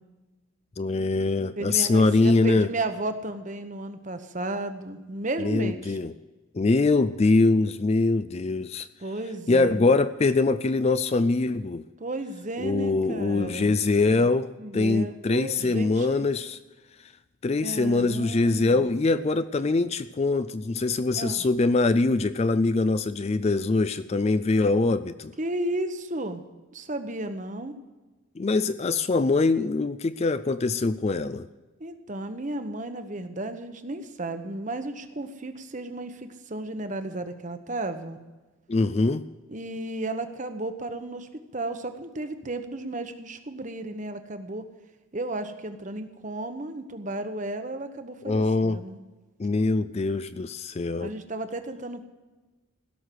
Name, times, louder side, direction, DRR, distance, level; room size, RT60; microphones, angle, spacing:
voice 1, 0.8-2.7 5.4-6.1 6.5-8.9 9.5-11.8 12.6-16.6 17.4-25.3 28.4-31.5 38.7-39.3 48.3-48.8 49.4-51.1, left 3 dB, 30° left, 0.3 m, -23 dB
voice 2, 1.6-6.0 9.0-9.9 12.0-13.8 14.1-14.3 14.6-16.2 17.6-18.9 21.1-21.4 25.4-26.4 26.7-27.7 31.8-38.2 39.5-44.6 45.1-49.0 51.0-52.0, right 2 dB, 35° right, 1.0 m, -33 dB
16.5 x 6.6 x 9.2 m
head